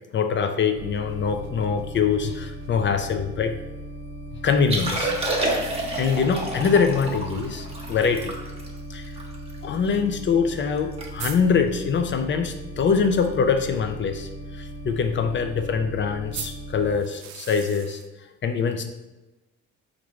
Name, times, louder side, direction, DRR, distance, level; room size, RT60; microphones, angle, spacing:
voice 1, 0.1-3.5 4.4-5.1 5.6-8.3 8.9-9.1 9.6-18.0 18.4-18.9, left 5 dB, 40° left, 7 dB, 0.4 m, -24 dB
sound 1, 0.7-16.9, right 1 dB, 85° left, 1.2 m, -38 dB
sound 2, 0.9-3.0 5.5-6.7 7.1-7.2 7.5-7.6 8.5-8.6 10.4-10.5 10.7-10.8 11.2-11.4 16.3-18.1, right 9 dB, 65° right, 0.5 m, -40 dB
Liquid, 4.6-10.0 10.4-10.5 10.8-11.1 11.3-11.6 12.2-12.4 13.9-14.0, right 1 dB, 20° right, 0.9 m, -29 dB
4.4 x 2.6 x 3.1 m, 1.0 s
cardioid pair, 90°, 30 cm